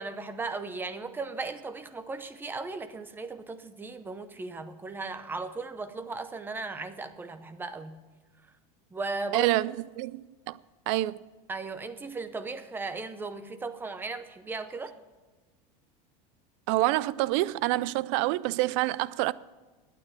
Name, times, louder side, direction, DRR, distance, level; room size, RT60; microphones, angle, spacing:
voice 1, 0.0-8.0 8.9-9.5 11.5-15.0, right 3 dB, 10° right, 0.7 m, -36 dB
voice 2, 9.3-10.6 10.9-11.2 16.7-19.3, right 17 dB, 55° right, 0.4 m, -27 dB
12.0 x 9.3 x 6.9 m
supercardioid pair, 160°, 19 cm